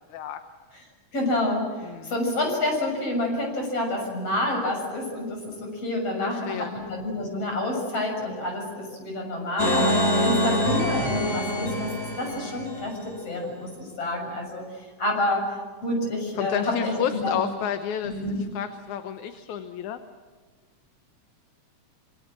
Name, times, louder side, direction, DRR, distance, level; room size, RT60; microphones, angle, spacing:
voice 1, 1.1-1.7 2.0-11.9 12.2-14.6 15.0-15.4 15.8-17.4 18.0-18.4, left 1 dB, 50° left, 1 dB, 7.9 m, -28 dB
voice 2, 1.8-2.2 6.2-6.7 16.4-20.0, left 9 dB, 70° left, 9 dB, 2.4 m, -31 dB
sound 1, 9.6-12.9, left 1 dB, 20° left, 3.8 m, -25 dB
26.5 x 24.5 x 7.6 m, 1.5 s
omnidirectional pair, 3.6 m